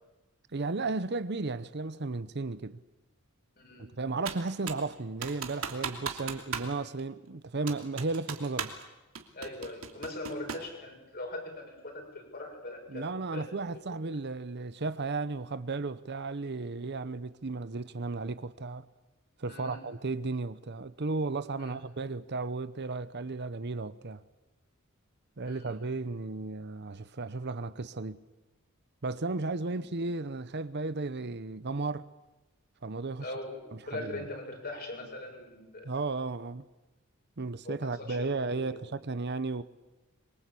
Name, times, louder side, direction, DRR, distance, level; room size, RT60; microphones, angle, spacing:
voice 1, 0.5-2.8 3.8-8.7 12.9-18.9 19.4-24.2 25.4-28.2 29.0-32.1 32.8-33.3 33.9-34.2 35.8-36.7 37.4-39.6, right 3 dB, 50° right, 0.8 m, -34 dB
voice 2, 3.6-3.9 6.2-6.6 9.3-13.5 13.7-13.8 14.1-14.2 19.5-19.8 21.6-21.8 25.5-25.7 29.7-29.8 33.2-35.9 37.6-38.6, left 2 dB, 45° left, 6.9 m, -41 dB
Computer keyboard, 4.3-4.9 5.2-6.7 7.0-7.1 7.7-8.8 9.2-10.7, right 6 dB, 75° right, 2.9 m, -37 dB
26.0 x 23.5 x 8.5 m
head